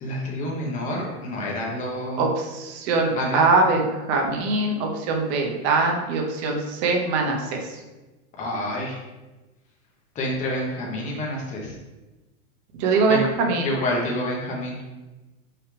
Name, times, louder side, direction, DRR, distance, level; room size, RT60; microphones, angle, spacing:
voice 1, 0.0-2.2 3.1-3.4 8.4-8.9 10.2-11.6 13.1-13.2 13.6-14.7, left 1 dB, 15° left, -2 dB, 1.1 m, -28 dB
voice 2, 2.2-7.6 12.8-13.7, right 3 dB, 30° right, 2 dB, 0.8 m, -22 dB
6.3 x 5.9 x 3.3 m, 1.1 s
supercardioid pair, 170°, 44 cm